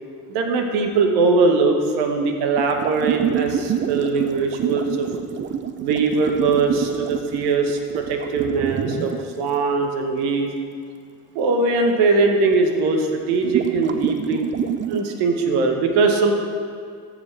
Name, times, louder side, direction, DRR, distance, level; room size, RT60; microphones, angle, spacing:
voice 1, 0.3-5.1 5.8-10.5 11.3-14.4 14.9-16.3, right 3 dB, 65° right, 4 dB, 1.2 m, -21 dB
sound 1, 2.6-9.2 12.5-12.6 13.4-15.0, right 9 dB, 30° right, 0.5 m, -26 dB
13.5 x 4.9 x 3.3 m, 2.2 s
hypercardioid pair, 65°, 43 cm